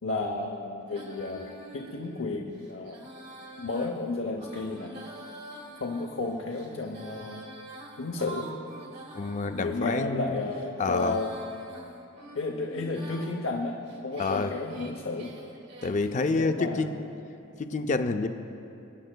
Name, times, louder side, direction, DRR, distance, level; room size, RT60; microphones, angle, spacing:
voice 1, 0.0-3.0 3.6-4.9 5.8-7.4 8.0-8.5 9.6-11.3 12.3-15.3 16.3-17.0, left 3 dB, 75° left, 1 dB, 0.7 m, -32 dB
Female singing, 0.9-9.8 10.4-13.3 13.9-16.2, right 1 dB, 50° right, 1.4 m, -46 dB
voice 2, 9.1-10.4 10.8-11.2 14.2-14.5 15.8-17.0 17.6-18.3, left 3 dB, 35° left, 8 dB, 0.4 m, -28 dB
22.0 x 10.0 x 2.2 m, 2.9 s
head